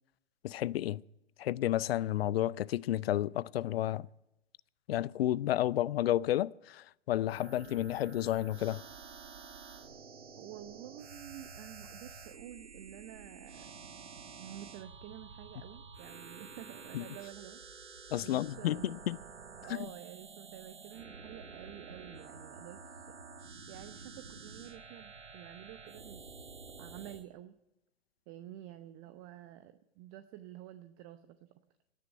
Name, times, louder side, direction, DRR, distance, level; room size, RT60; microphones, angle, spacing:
voice 1, 0.4-1.0 1.4-4.1 4.9-8.8 16.9-17.0 18.1-19.2 19.7-19.8, left 13 dB, 60° left, 0.5 m, -31 dB
sound 1, 7.3-27.2, right 5 dB, 85° right, 1.3 m, -50 dB
voice 2, 10.4-13.7 14.4-17.6 18.1-19.0 19.6-23.1 23.7-27.5 28.3-31.5, right 13 dB, 35° right, 0.8 m, -50 dB
18.0 x 6.5 x 9.9 m
figure-of-eight pair, 110°, 34 cm